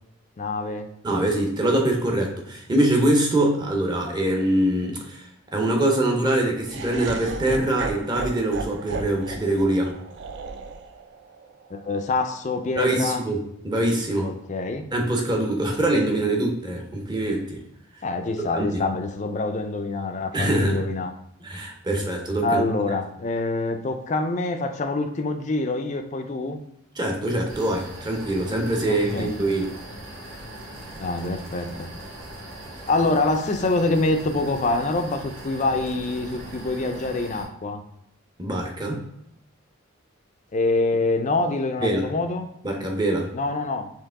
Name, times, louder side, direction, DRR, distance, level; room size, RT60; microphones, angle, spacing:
voice 1, 0.4-0.9 11.7-13.2 14.2-14.9 18.0-21.1 22.4-26.6 28.8-29.3 30.9-31.9 32.9-37.8 40.5-42.5 43.3-43.9, left 2 dB, 35° left, 6 dB, 0.4 m, -25 dB
voice 2, 1.0-5.3 5.5-10.0 12.8-14.3 14.9-17.6 18.5-18.8 20.3-20.9 21.4-22.6 27.0-29.8 38.4-39.0 41.8-42.1 42.6-43.3, right 1 dB, 20° right, 2 dB, 0.7 m, -23 dB
Laughter, 6.6-12.8, right 4 dB, 55° right, 0.3 m, -36 dB
sound 1, 27.5-37.4, right 1 dB, 70° right, 1.2 m, -40 dB
4.6 x 2.8 x 3.5 m, 0.79 s
head